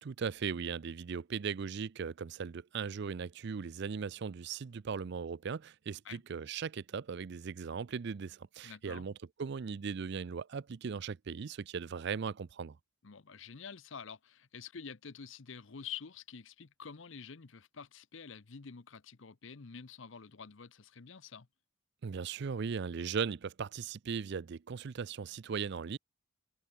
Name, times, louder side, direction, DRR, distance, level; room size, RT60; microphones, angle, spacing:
voice 1, 0.0-9.1 9.4-12.8 22.0-26.0, right 6 dB, 55° right, 0.4 m, -38 dB
voice 2, 8.6-9.1 13.0-21.5, left 6 dB, 65° left, 0.8 m, -48 dB
head